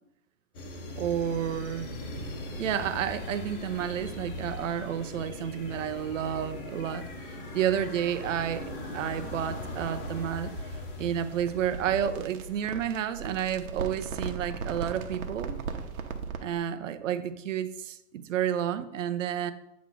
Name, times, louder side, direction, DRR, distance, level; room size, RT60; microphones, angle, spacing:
sound 1, 0.5-12.9, left 1 dB, 40° left, 1.1 m, -39 dB
voice 1, 1.0-1.9 2.6-10.5 11.0-15.6 16.4-19.5, right 9 dB, 65° right, 11 dB, 0.7 m, -31 dB
sound 2, 11.5-16.5, right 5 dB, 85° right, 1.0 m, -37 dB
8.4 x 3.1 x 6.1 m, 0.86 s
supercardioid pair, 180°, 41 cm